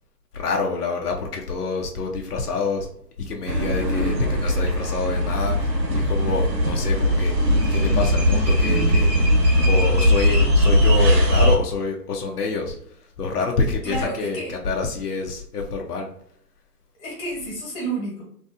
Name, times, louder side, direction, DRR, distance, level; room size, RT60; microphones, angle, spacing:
voice 1, 0.3-2.9 3.2-9.1 9.7-12.8 13.2-16.1, left 4 dB, 70° left, 1 dB, 0.7 m, -27 dB
sound 1, 3.5-11.6, equal, 90° right, 1.5 m, -19 dB
voice 2, 13.8-14.5 17.0-18.2, right 2 dB, 20° left, -4 dB, 1.3 m, -30 dB
3.2 x 2.7 x 2.5 m, 0.68 s
hypercardioid pair, 155°, 49 cm